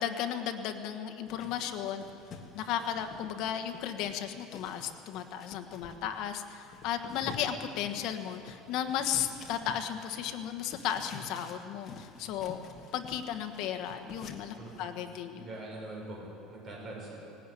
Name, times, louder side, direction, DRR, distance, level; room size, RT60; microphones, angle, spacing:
voice 1, 0.0-2.0 2.5-12.6 12.9-15.5, left 9 dB, 55° left, 7 dB, 1.4 m, -35 dB
sound 1, 1.3-15.2, left 5 dB, 35° left, 1.7 m, -49 dB
voice 2, 14.6-14.9 15.3-17.2, right 1 dB, 25° right, -3 dB, 6.7 m, -43 dB
18.5 x 17.5 x 10.0 m, 2.7 s
cardioid pair, 170°, 0 cm